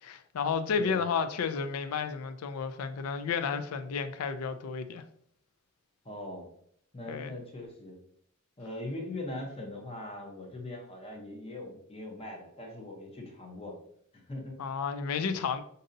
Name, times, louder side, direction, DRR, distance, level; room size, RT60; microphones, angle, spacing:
voice 1, 0.0-5.0 7.1-7.3 14.6-15.6, left 6 dB, 85° left, 0.4 m, -32 dB
voice 2, 6.0-6.5 6.9-8.0 8.6-13.8 14.1-14.6, left 1 dB, 25° left, 0.7 m, -41 dB
5.2 x 2.7 x 2.6 m
head